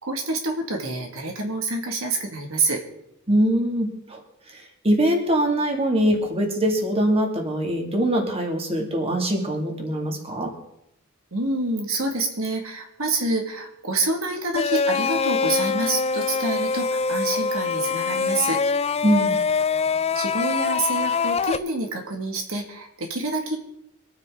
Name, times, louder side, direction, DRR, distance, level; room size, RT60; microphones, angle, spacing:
voice 1, 0.0-2.8 11.3-18.6 20.1-23.6, right 2 dB, 90° right, 3 dB, 2.2 m, -27 dB
voice 2, 3.3-4.2 4.5-10.5 19.0-19.4, right 1 dB, 30° right, 2 dB, 2.5 m, -23 dB
sound 1, 14.5-21.6, left 5 dB, 30° left, 0.4 m, -24 dB
25.0 x 9.5 x 3.9 m, 0.80 s
head